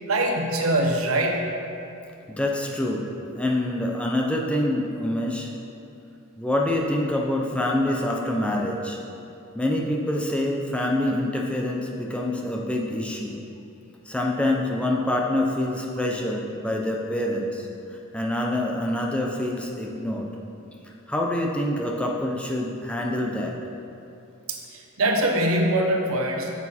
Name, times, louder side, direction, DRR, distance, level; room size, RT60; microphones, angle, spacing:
voice 1, 0.1-1.5 24.5-26.5, right 1 dB, 80° right, 2 dB, 1.0 m, -23 dB
voice 2, 2.3-3.1 3.4-5.5 6.4-9.0 9.6-13.4 14.1-17.7 18.1-20.3 20.8-23.6, left 1 dB, 5° left, -1 dB, 0.6 m, -26 dB
8.2 x 7.0 x 4.3 m, 2.7 s
head